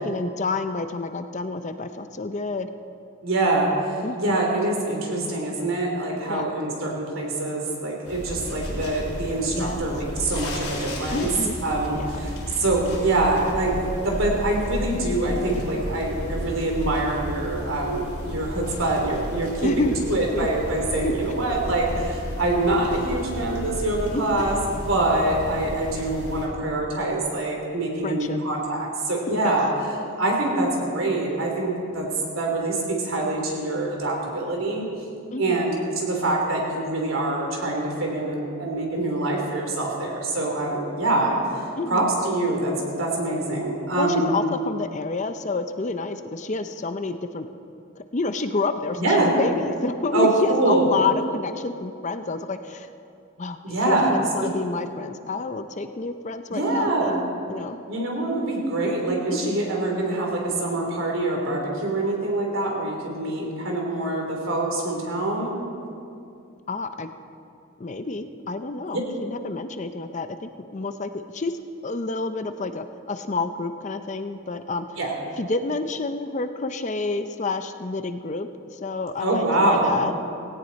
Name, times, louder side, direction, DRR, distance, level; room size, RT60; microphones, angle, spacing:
voice 1, 0.0-2.7 4.0-4.4 6.3-6.5 9.6-9.8 11.1-11.6 12.0-12.2 19.6-20.5 21.0-21.1 24.1-24.4 28.0-28.4 29.3-29.4 35.3-35.6 41.8-42.1 44.0-47.5 48.0-52.9 53.4-57.1 57.5-57.8 59.3-59.5 66.7-67.1 67.8-71.5 71.8-75.0 75.4-80.2, left 3 dB, 35° left, 9 dB, 0.5 m, -29 dB
voice 2, 3.2-11.3 11.6-29.7 30.2-32.1 32.3-34.8 35.4-41.4 41.9-44.3 48.9-49.3 50.1-50.9 53.6-54.1 56.5-57.2 57.9-65.5 75.0-75.1 79.2-79.9, right 2 dB, 65° right, -1 dB, 3.4 m, -25 dB
sound 1, 8.0-26.5, equal, 85° left, 4.2 m, -33 dB
17.5 x 17.0 x 4.2 m, 2.6 s
head